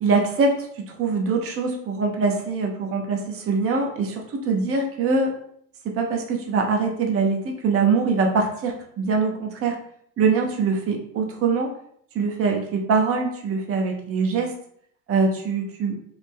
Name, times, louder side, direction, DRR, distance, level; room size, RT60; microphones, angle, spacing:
voice 1, 0.0-5.3 6.0-9.8 10.2-11.7 12.1-14.5 15.1-15.9, right 4 dB, 35° right, 2 dB, 0.7 m, -23 dB
3.2 x 2.0 x 3.5 m, 0.67 s
hypercardioid pair, 90°, 40 cm